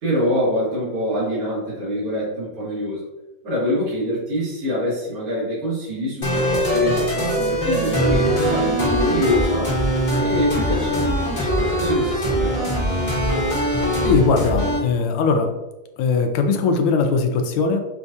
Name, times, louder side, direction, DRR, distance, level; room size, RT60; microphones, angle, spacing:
voice 1, 0.0-3.0 3.4-9.7 10.2-12.7, equal, 80° right, -9 dB, 2.5 m, -25 dB
sound 1, 6.2-14.8, equal, 30° left, 0.9 m, -21 dB
voice 2, 14.0-15.5 16.0-17.8, left 4 dB, 80° left, 5 dB, 1.4 m, -19 dB
6.2 x 2.3 x 2.6 m, 1.0 s
omnidirectional pair, 2.4 m